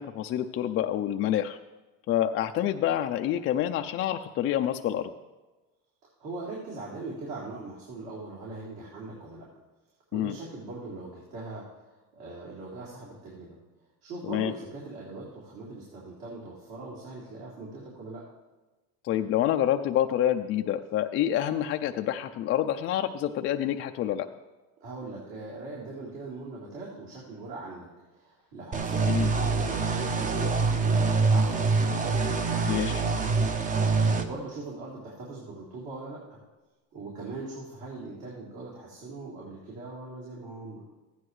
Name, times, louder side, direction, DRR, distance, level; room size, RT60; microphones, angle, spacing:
voice 1, 0.0-1.6 2.1-5.1 10.1-10.3 14.3-14.5 19.0-24.3 29.1-29.3 32.7-33.0, left 11 dB, 35° left, 5 dB, 0.4 m, -27 dB
voice 2, 6.2-9.5 10.1-13.6 14.0-18.3 24.8-33.6 33.9-36.4 36.9-40.8, right 3 dB, 65° right, -6 dB, 3.5 m, -41 dB
sound 1, 28.7-34.2, right 4 dB, 20° right, 0.7 m, -25 dB
14.5 x 9.7 x 3.2 m, 1.2 s
cardioid pair, 135°, 36 cm